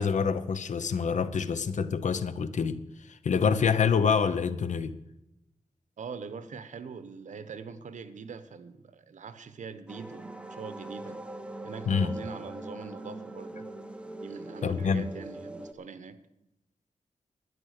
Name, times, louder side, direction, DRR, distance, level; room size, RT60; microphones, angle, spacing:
voice 1, 0.0-2.8 3.2-4.9 11.9-12.1 14.6-15.0, left 6 dB, 80° left, 13 dB, 0.8 m, -26 dB
voice 2, 6.0-11.2 11.6-13.7 14.0-16.2, right 5 dB, 80° right, 12 dB, 1.0 m, -43 dB
sound 1, 9.9-15.7, right 1 dB, 10° right, 1.0 m, -41 dB
12.0 x 10.0 x 6.5 m, 0.89 s
wide cardioid pair, 105°, 12 cm